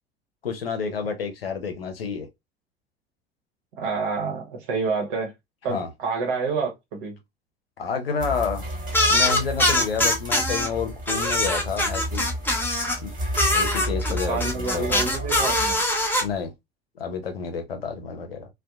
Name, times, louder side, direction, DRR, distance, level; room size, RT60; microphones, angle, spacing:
voice 1, 0.4-2.3 5.7-5.9 7.8-8.6 9.1-12.3 13.0-13.1 13.5-15.0 16.2-16.5 17.0-18.5, left 6 dB, 80° left, 0.6 m, -29 dB
voice 2, 3.8-5.3 5.6-7.2 14.3-15.8, right 4 dB, 60° right, 1.0 m, -28 dB
sound 1, 8.2-15.8, equal, 30° right, 1.4 m, -32 dB
sound 2, 8.9-10.7 11.1-13.0 13.3-16.2, left 1 dB, 5° left, 0.7 m, -22 dB
2.6 x 2.1 x 2.3 m
figure-of-eight pair, 65°, 29 cm